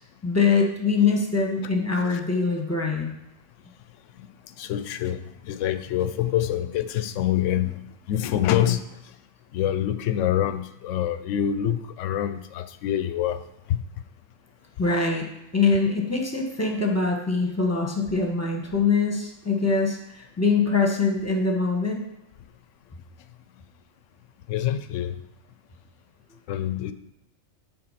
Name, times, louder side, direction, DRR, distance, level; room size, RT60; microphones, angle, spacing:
voice 1, 0.2-3.1 14.8-15.3 15.5-22.0, left 4 dB, 15° left, 0 dB, 1.1 m, -23 dB
voice 2, 4.6-7.8 8.1-8.8 9.5-13.4 13.7-13.8 24.5-25.2 26.5-26.9, left 11 dB, 75° left, 11 dB, 0.9 m, -26 dB
7.8 x 3.8 x 5.7 m, 0.89 s
omnidirectional pair, 1.3 m